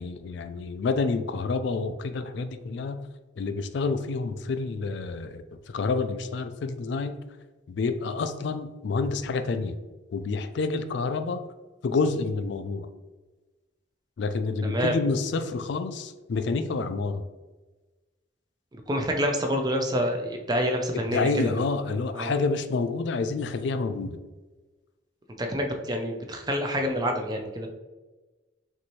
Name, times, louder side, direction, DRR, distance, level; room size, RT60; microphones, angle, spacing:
voice 1, 0.0-3.0 3.4-7.2 7.7-9.8 10.1-11.4 11.8-12.9 14.2-17.3 20.9-24.2, left 4 dB, 65° left, 9 dB, 0.3 m, -28 dB
voice 2, 14.6-15.0 18.7-21.6 22.1-22.3 25.4-27.7, equal, 20° right, 3 dB, 0.5 m, -27 dB
6.0 x 2.6 x 3.0 m, 1.2 s
head